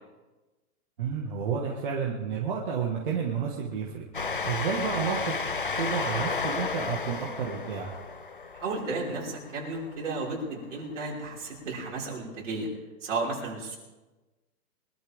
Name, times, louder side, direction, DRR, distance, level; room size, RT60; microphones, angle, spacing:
voice 1, 1.0-5.4 5.8-7.9, right 6 dB, 35° right, -2 dB, 1.7 m, -31 dB
Train, 4.1-10.3, left 4 dB, 40° left, 0.4 m, -33 dB
voice 2, 8.6-12.7 13.0-13.8, right 3 dB, 50° right, -4 dB, 5.5 m, -33 dB
24.0 x 13.0 x 3.6 m, 1.2 s
hypercardioid pair, 180°, 45 cm